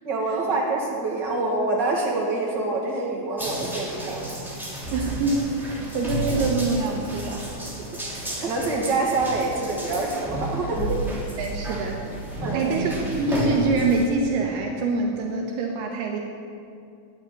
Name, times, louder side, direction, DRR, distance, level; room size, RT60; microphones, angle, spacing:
voice 1, 0.0-4.4 8.1-10.9 12.4-12.8, right 3 dB, 40° right, -3 dB, 1.8 m, -26 dB
sound 1, 3.4-14.0, right 1 dB, ahead, 1.9 m, -31 dB
voice 2, 4.9-7.5 11.4-12.0 12.5-16.2, right 3 dB, 75° right, 1 dB, 2.8 m, -25 dB
10.5 x 9.4 x 9.3 m, 2.5 s
omnidirectional pair, 4.9 m